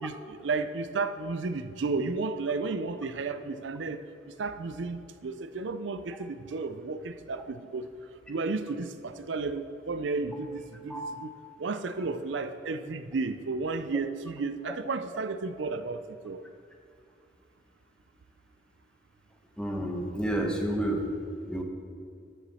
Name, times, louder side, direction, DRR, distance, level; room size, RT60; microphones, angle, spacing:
voice 1, 0.0-7.9 8.3-11.3 11.6-16.4, right 3 dB, 85° right, 11 dB, 0.5 m, -33 dB
voice 2, 19.6-21.1 21.5-21.6, right 1 dB, 5° left, 1 dB, 1.1 m, -30 dB
13.0 x 7.1 x 4.2 m, 2.4 s
head